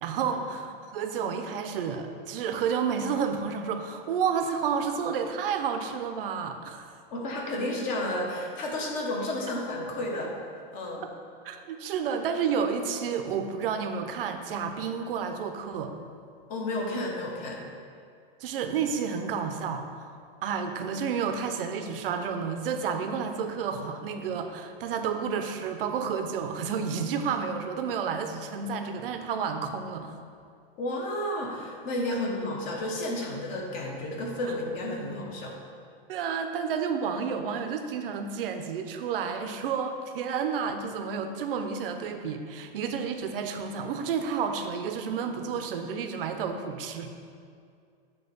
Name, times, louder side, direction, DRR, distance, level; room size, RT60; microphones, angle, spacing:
voice 1, 0.0-6.9 11.0-11.1 11.4-15.9 18.4-20.2 20.4-30.1 36.1-47.1, right 6 dB, 65° right, 6 dB, 0.7 m, -30 dB
voice 2, 7.1-10.4 10.7-11.0 16.5-17.6 30.8-35.6, left 1 dB, 25° left, -1 dB, 0.9 m, -32 dB
7.8 x 3.0 x 5.9 m, 2.3 s
supercardioid pair, 155°, 30 cm